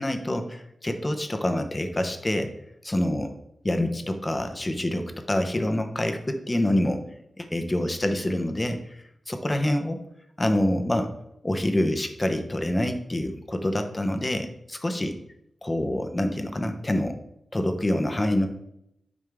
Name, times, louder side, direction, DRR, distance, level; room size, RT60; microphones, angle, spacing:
voice 1, 0.0-2.5 2.8-3.3 3.6-7.0 7.4-10.0 10.4-11.1 11.4-15.2 15.6-17.2 17.5-18.5, left 1 dB, 20° left, 6 dB, 0.9 m, -26 dB
8.5 x 5.5 x 3.5 m, 0.78 s
wide cardioid pair, 130°, 0 cm